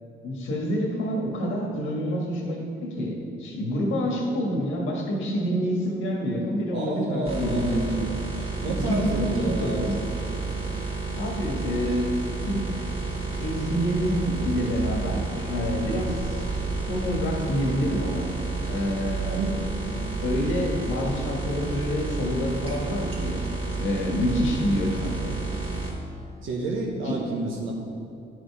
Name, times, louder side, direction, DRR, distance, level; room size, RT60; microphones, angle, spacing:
voice 1, 0.2-8.1 8.6-10.0 11.1-12.2 12.5-12.8 13.4-15.2 15.5-16.4 16.9-18.3 18.7-19.4 19.9-23.4 23.7-25.3 27.0-27.2, equal, 80° left, 0 dB, 1.6 m, -27 dB
voice 2, 6.7-7.8 8.6-10.0 19.4-19.7 26.4-27.7, right 3 dB, 90° right, -1 dB, 1.0 m, -30 dB
sound 1, 7.2-25.9, right 3 dB, 25° right, 1.8 m, -31 dB
10.5 x 5.2 x 4.8 m, 2.7 s
cardioid pair, 90°, 20 cm